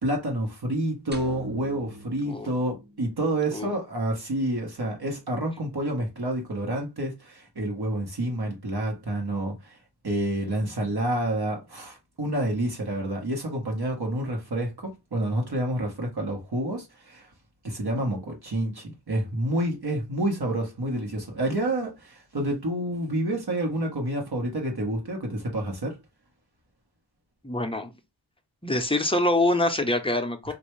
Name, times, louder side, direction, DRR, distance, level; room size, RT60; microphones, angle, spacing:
voice 1, 0.0-9.8 10.0-17.3 17.6-26.0, right 1 dB, 55° right, 1.2 m, -28 dB
sound 1, 1.1-3.4, right 2 dB, 20° right, 0.9 m, -43 dB
voice 2, 27.4-27.9 28.6-30.5, left 1 dB, 10° left, 0.7 m, -25 dB
3.2 x 2.6 x 3.1 m
cardioid pair, 45°, 47 cm